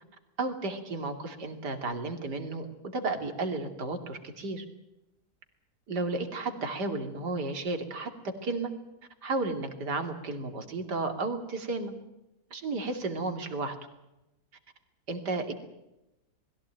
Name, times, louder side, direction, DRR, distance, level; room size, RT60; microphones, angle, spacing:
voice 1, 0.4-2.7 2.9-4.6 5.9-8.1 8.4-8.7 9.2-11.9 12.5-13.8 15.1-15.5, right 3 dB, 70° right, 5 dB, 3.2 m, -33 dB
21.5 x 16.0 x 8.9 m, 0.94 s
omnidirectional pair, 1.8 m